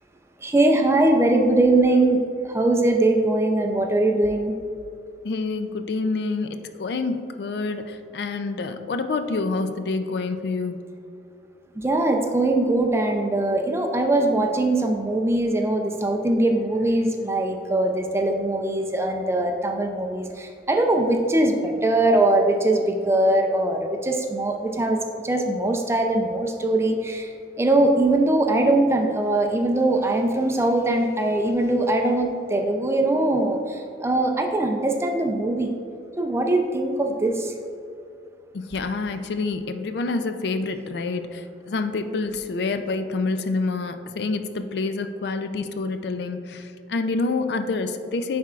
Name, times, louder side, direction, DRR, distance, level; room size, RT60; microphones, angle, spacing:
voice 1, 0.4-2.2 2.5-4.5 11.8-25.0 25.2-27.3 27.6-35.7 36.2-37.5, right 2 dB, 15° right, 3 dB, 0.4 m, -21 dB
voice 2, 5.2-6.5 6.8-10.8 38.5-41.4 41.7-46.6 46.9-48.4, left 3 dB, 60° left, 8 dB, 0.4 m, -27 dB
9.5 x 4.3 x 2.4 m, 2.6 s
head